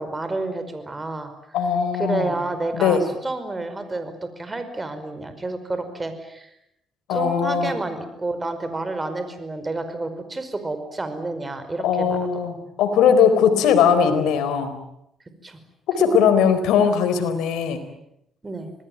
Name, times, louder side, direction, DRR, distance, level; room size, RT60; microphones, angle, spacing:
voice 1, 0.0-1.6 1.9-6.5 7.1-12.3 15.4-15.6 16.0-16.3 18.4-18.7, right 2 dB, 20° right, 9 dB, 5.2 m, -30 dB
voice 2, 1.5-2.3 2.7-3.0 7.1-7.8 11.8-14.8 15.9-17.8, left 7 dB, 90° left, 8 dB, 4.2 m, -19 dB
26.5 x 19.5 x 9.3 m, 0.80 s
cardioid pair, 90°, 0 cm